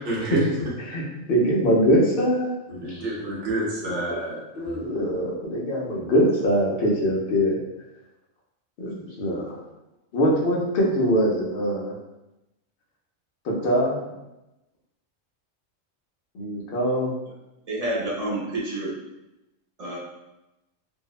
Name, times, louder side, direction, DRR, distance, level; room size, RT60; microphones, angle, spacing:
voice 1, 0.0-0.4 2.8-4.4 4.6-4.8, right 2 dB, 65° right, -6 dB, 1.0 m, -28 dB
voice 2, 0.8-2.5 2.9-3.1 3.9-4.0 4.6-7.6 8.8-9.6 10.1-12.0 13.4-14.0 16.3-17.2, equal, 55° left, -3 dB, 0.7 m, -23 dB
voice 3, 17.7-18.9 19.8-20.0, right 1 dB, 50° right, -5 dB, 0.4 m, -28 dB
2.7 x 2.0 x 2.3 m, 0.96 s
omnidirectional pair, 1.4 m